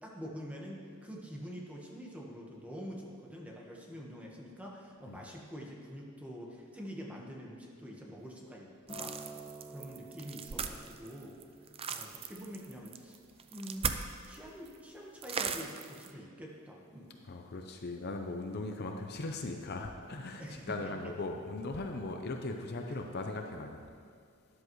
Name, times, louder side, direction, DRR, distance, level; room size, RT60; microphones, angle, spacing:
voice 1, 0.0-8.7 9.0-9.2 9.7-11.4 11.9-13.2 13.5-13.9 14.2-17.1 20.4-21.1 22.9-23.0, equal, 5° right, -2 dB, 1.4 m, -46 dB
Acoustic guitar, 8.9-13.2 14.0-14.1, right 2 dB, 20° left, 1.3 m, -51 dB
sound 1, 8.9-14.4 14.6-14.8 15.2-16.1, right 6 dB, 25° right, 0.4 m, -38 dB
voice 2, 17.2-23.8, left 2 dB, 50° left, 4 dB, 0.7 m, -39 dB
13.0 x 11.0 x 3.2 m, 2.3 s
head